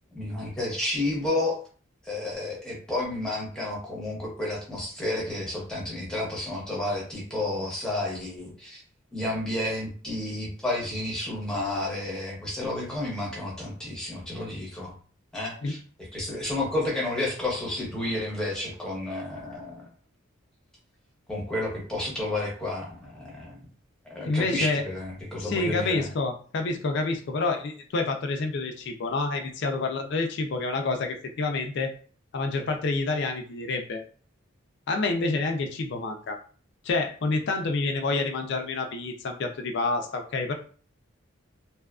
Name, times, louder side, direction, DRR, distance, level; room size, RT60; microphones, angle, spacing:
voice 1, 0.1-1.6 2.0-8.8 9.1-14.9 15.3-15.8 16.1-19.9 21.3-23.6 24.1-26.1, left 1 dB, 5° left, -3 dB, 0.8 m, -31 dB
voice 2, 24.2-24.8 25.4-31.9 32.3-34.0 34.9-36.4 36.8-40.5, left 3 dB, 55° left, 4 dB, 0.4 m, -28 dB
2.7 x 2.3 x 2.3 m, 0.41 s
head